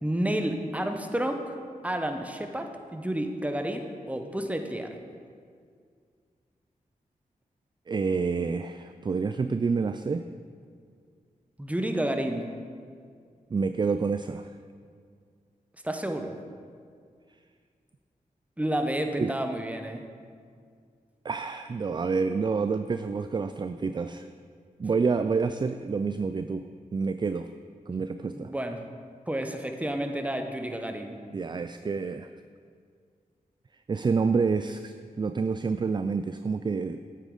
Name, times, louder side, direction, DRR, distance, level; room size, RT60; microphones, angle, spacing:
voice 1, 0.0-1.5 1.8-5.0 11.6-12.5 15.8-16.3 18.6-20.0 28.3-28.8 29.3-31.2, right 1 dB, 10° right, 5 dB, 1.0 m, -30 dB
voice 2, 7.9-10.3 13.5-14.5 19.2-19.3 21.2-24.3 24.8-27.5 27.9-28.5 31.3-32.3 33.9-37.0, right 4 dB, 30° right, 10 dB, 0.3 m, -28 dB
8.4 x 8.4 x 3.9 m, 2.1 s
cardioid pair, 45°, 15 cm